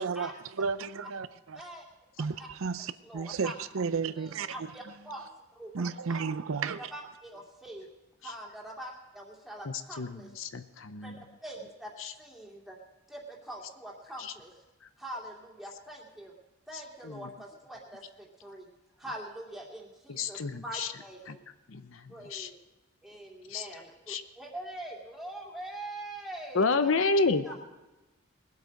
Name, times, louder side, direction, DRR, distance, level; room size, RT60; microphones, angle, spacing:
voice 1, 0.0-1.6 2.2-4.5 5.7-6.9, right 5 dB, 75° right, 0.5 m, -33 dB
voice 2, 3.0-3.5 4.2-5.3 5.6-6.2 6.6-7.9 8.2-10.3 11.0-12.8 13.1-14.6 15.0-16.3 16.7-18.7 19.0-21.4 22.1-22.6 23.0-26.9 27.4-27.5, right 1 dB, ahead, 2.3 m, -44 dB
voice 3, 10.0-11.2 12.0-12.1 14.2-14.3 17.0-17.2 20.1-20.9 21.3-21.4 21.7-22.0 22.3-22.5 23.5-23.7 24.1-24.2 26.5-27.6, left 3 dB, 70° left, 0.7 m, -29 dB
20.5 x 8.1 x 5.2 m
head